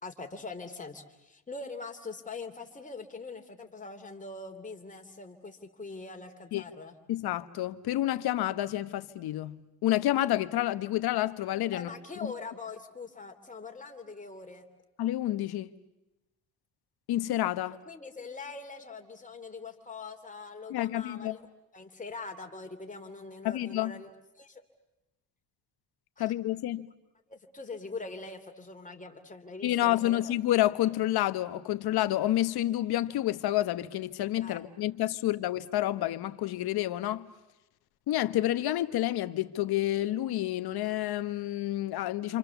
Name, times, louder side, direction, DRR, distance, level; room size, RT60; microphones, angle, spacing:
voice 1, 0.0-6.9 11.7-14.7 17.9-21.4 21.7-24.1 24.4-24.6 26.2-26.3 27.3-30.2 34.4-34.6, left 3 dB, 20° left, 2.9 m, -43 dB
voice 2, 7.1-9.6 9.8-11.9 12.2-12.3 15.0-15.7 17.1-17.8 20.7-21.4 23.4-24.0 26.2-26.9 29.6-37.3 38.1-42.4, left 14 dB, 75° left, 1.2 m, -29 dB
28.0 x 27.5 x 7.0 m
cardioid pair, 115°, 38 cm